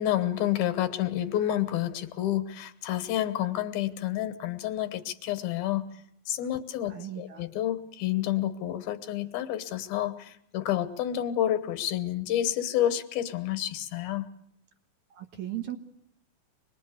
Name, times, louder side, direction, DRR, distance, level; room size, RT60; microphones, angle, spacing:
voice 1, 0.0-5.8 6.3-14.3, left 12 dB, 80° left, 11 dB, 3.0 m, -29 dB
voice 2, 6.9-7.5 15.1-15.8, right 12 dB, 60° right, 6 dB, 2.5 m, -37 dB
25.5 x 21.0 x 8.4 m, 0.74 s
omnidirectional pair, 4.3 m